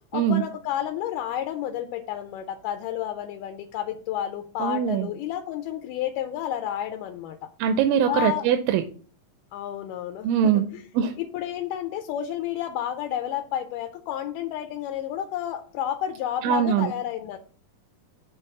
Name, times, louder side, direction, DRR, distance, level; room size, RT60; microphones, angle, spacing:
voice 1, 0.1-7.4 8.1-8.5 9.5-10.8 11.3-17.4, left 11 dB, 80° left, 6 dB, 2.1 m, -31 dB
voice 2, 4.6-5.1 7.6-8.8 10.2-10.6 10.9-11.1 16.4-16.9, right 8 dB, 90° right, 7 dB, 2.3 m, -22 dB
6.9 x 3.4 x 5.8 m, 0.43 s
omnidirectional pair, 3.9 m